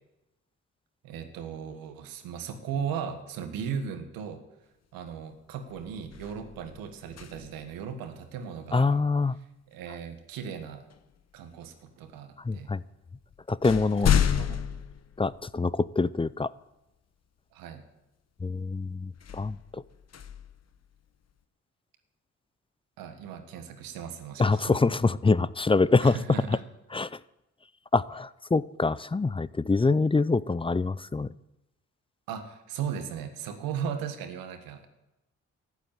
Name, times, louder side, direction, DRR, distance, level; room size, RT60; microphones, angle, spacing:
voice 1, 1.0-4.4 4.9-9.0 9.7-10.8 11.3-12.7 14.3-14.7 17.5-17.8 23.0-24.8 26.0-26.6 32.3-34.9, right 7 dB, 85° right, 8 dB, 1.5 m, -37 dB
sound 1, 5.1-5.3 5.7-7.8 9.9-10.1 10.9-11.7 12.5-12.6 13.0-15.9 16.4-16.5 19.1-21.3, left 8 dB, 50° left, 1.0 m, -31 dB
voice 2, 8.7-9.4 12.4-12.8 13.5-14.1 15.2-16.5 18.4-19.8 24.4-26.2 26.5-26.6 26.9-27.2 27.9-31.3, left 3 dB, 15° left, 19 dB, 0.5 m, -25 dB
13.5 x 8.3 x 9.0 m, 0.94 s
hypercardioid pair, 45°, 34 cm